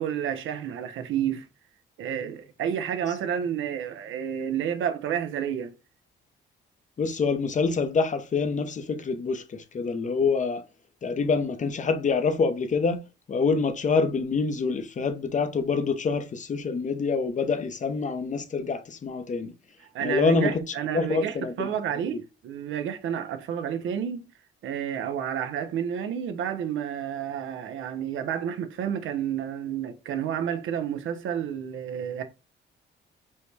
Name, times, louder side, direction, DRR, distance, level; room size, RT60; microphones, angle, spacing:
voice 1, 0.0-1.5 2.0-5.7 19.9-24.2 24.6-32.2, right 9 dB, 80° right, 0.7 m, -30 dB
voice 2, 7.0-10.7 11.0-13.0 13.3-19.5 20.0-20.6 20.9-21.7, left 4 dB, 40° left, 0.8 m, -26 dB
5.5 x 2.2 x 3.2 m
cardioid pair, 90°, 20 cm